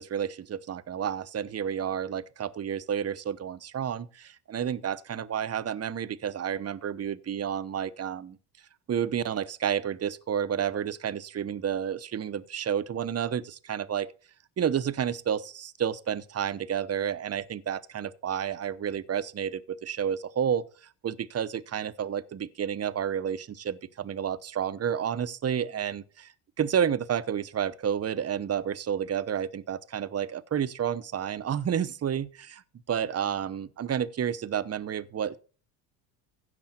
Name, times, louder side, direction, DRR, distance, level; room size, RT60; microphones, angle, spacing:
voice 1, 0.0-8.4 8.9-14.1 14.6-20.6 21.0-32.6 32.9-35.4, right 8 dB, 30° right, 1.0 m, -30 dB
16.0 x 6.0 x 4.4 m
hypercardioid pair, 75°, 50 cm